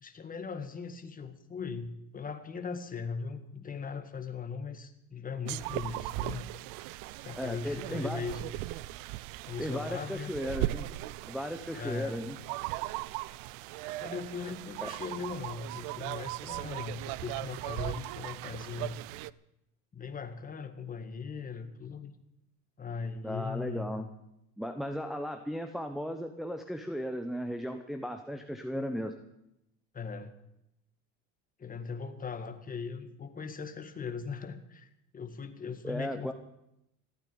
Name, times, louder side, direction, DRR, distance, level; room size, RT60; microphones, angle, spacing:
voice 1, 0.0-6.5 7.2-8.4 9.5-10.3 11.7-12.2 14.0-18.9 19.9-22.1 22.8-24.0 29.9-30.3 31.6-36.3, left 5 dB, 25° left, 8 dB, 1.9 m, -39 dB
sound 1, 5.4-19.3, right 18 dB, 70° right, 0.6 m, -38 dB
voice 2, 7.4-8.2 9.6-10.9 11.3-12.4 14.8-14.9 23.2-24.1 24.6-29.1 35.8-36.3, equal, ahead, 6 dB, 1.0 m, -36 dB
15.5 x 9.1 x 9.5 m, 0.83 s
supercardioid pair, 110°, 33 cm